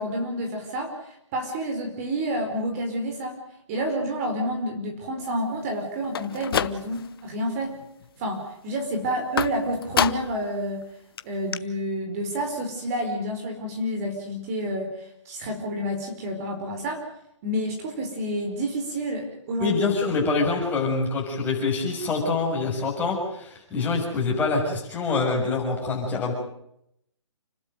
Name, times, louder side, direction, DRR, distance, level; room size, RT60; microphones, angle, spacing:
voice 1, 0.0-3.4 3.7-7.8 8.2-10.8 11.2-17.0 17.4-19.8, equal, 30° right, 3 dB, 4.7 m, -29 dB
sound 1, 6.0-7.2 7.6-8.1 9.4-10.5 10.8-10.9 11.2-11.3 11.5-11.6, left 8 dB, 50° left, 1.0 m, -28 dB
voice 2, 19.6-26.3, left 4 dB, 10° left, -2 dB, 6.8 m, -25 dB
29.5 x 12.5 x 9.2 m, 0.76 s
hypercardioid pair, 150°, 15 cm